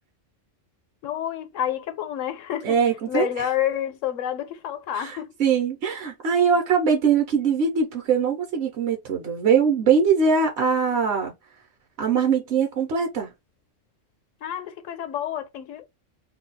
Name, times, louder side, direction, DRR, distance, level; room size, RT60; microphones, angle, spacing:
voice 1, 1.0-2.8 3.1-5.3 14.4-15.9, left 10 dB, 85° left, 1.0 m, -29 dB
voice 2, 2.6-3.5 4.9-11.3 12.0-13.3, right 6 dB, 65° right, 1.0 m, -22 dB
2.7 x 2.3 x 3.8 m
omnidirectional pair, 1.3 m